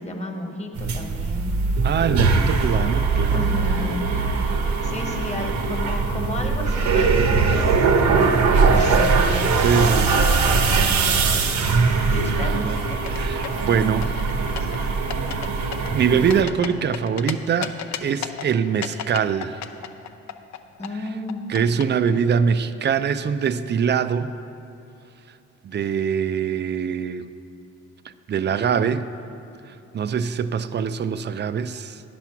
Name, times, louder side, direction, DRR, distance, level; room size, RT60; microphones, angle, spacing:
voice 1, 0.0-1.6 3.3-4.1 4.8-7.8 8.3-9.6 10.4-11.6 12.0-12.6 20.8-21.5, left 1 dB, 20° left, 2 dB, 1.3 m, -32 dB
sound 1, 0.7-16.4, right 4 dB, 70° right, 0.9 m, -21 dB
voice 2, 1.8-3.5 9.6-10.3 10.6-11.0 12.2-12.8 13.1-14.2 14.6-15.0 15.9-17.7 18.0-19.6 21.5-24.3 25.6-27.3 28.3-29.1 29.7-32.0, right 7 dB, 35° right, 12 dB, 0.4 m, -23 dB
sound 2, 12.9-13.7 14.0-14.8 15.1-15.5 15.7-17.3 17.6-18.5 18.8-21.8, left 10 dB, 65° left, 0.6 m, -32 dB
9.9 x 6.0 x 5.9 m, 2.9 s
cardioid pair, 90°, 30 cm